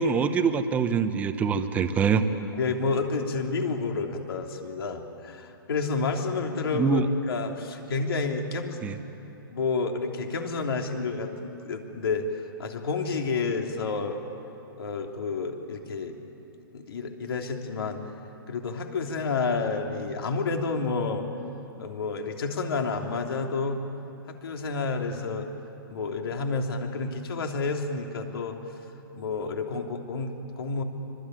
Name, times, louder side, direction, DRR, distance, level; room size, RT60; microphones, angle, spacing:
voice 1, 0.0-2.2 6.7-7.1 8.8-9.0, right 6 dB, 10° right, 8 dB, 0.9 m, -24 dB
voice 2, 2.6-8.8 9.5-14.2 14.8-16.2 16.7-18.0 18.5-21.3 21.8-23.8 24.3-25.5 25.9-28.6 29.1-30.8, left 4 dB, 70° left, 3 dB, 3.2 m, -30 dB
25.0 x 23.0 x 9.3 m, 2.9 s
hypercardioid pair, 160°, 13 cm